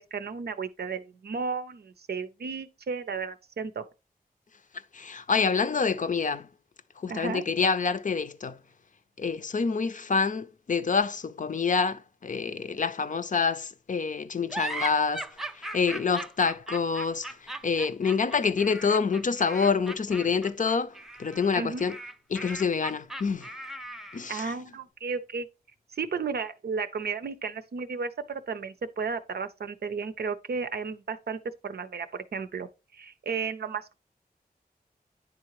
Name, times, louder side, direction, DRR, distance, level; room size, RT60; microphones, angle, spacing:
voice 1, 0.0-3.8 7.1-7.4 21.6-21.9 24.3-25.5 25.9-33.9, right 5 dB, 90° right, 0.6 m, -33 dB
voice 2, 4.9-6.5 7.0-8.6 9.2-15.3 15.5-22.0 22.3-23.5 24.1-24.6, left 5 dB, 55° left, 0.5 m, -27 dB
sound 1, 14.5-24.3, right 1 dB, ahead, 0.4 m, -38 dB
9.8 x 3.8 x 3.1 m
wide cardioid pair, 70°, 16 cm